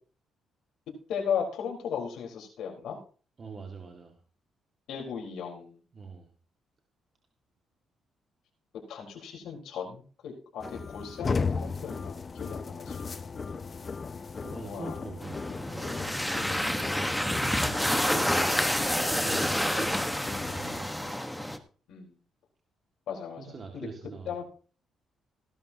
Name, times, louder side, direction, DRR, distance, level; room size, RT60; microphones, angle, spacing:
voice 1, 1.1-3.0 4.9-5.8 8.9-13.1 14.6-15.0 16.6-16.7 17.1-17.4 21.0-21.2 21.9-22.2 23.1-23.9 24.2-24.4, left 7 dB, 80° left, 0 dB, 4.3 m, -37 dB
voice 2, 3.4-4.2 5.9-6.3 14.4-17.1 17.9-18.6 19.0-19.9 20.3-20.9 23.4-24.4, right 4 dB, 40° right, 2 dB, 2.1 m, -43 dB
sound 1, 10.6-20.8, left 4 dB, 35° left, 0.7 m, -36 dB
sound 2, 15.2-21.6, equal, ahead, 1.3 m, -29 dB
17.5 x 12.0 x 2.9 m, 0.38 s
cardioid pair, 90°, 0 cm